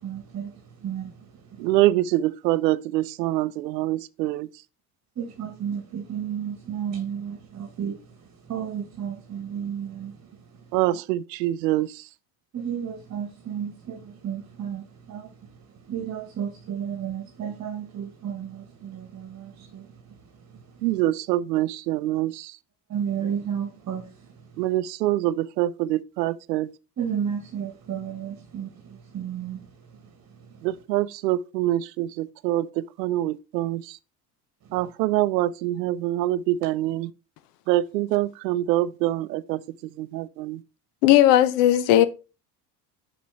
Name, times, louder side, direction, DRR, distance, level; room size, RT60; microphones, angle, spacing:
voice 1, 0.0-1.6 5.2-10.7 12.5-20.9 22.9-24.5 27.0-30.7 34.7-34.8, right 8 dB, 35° right, 1.3 m, -33 dB
voice 2, 1.6-4.5 10.7-12.0 20.8-22.6 24.6-26.7 30.6-34.0 34.7-37.1 37.7-39.6 40.0-40.6, right 15 dB, 85° right, 0.5 m, -25 dB
voice 3, 41.0-42.1, left 13 dB, 75° left, 0.9 m, -16 dB
5.8 x 5.4 x 3.2 m
hypercardioid pair, 80°, 48 cm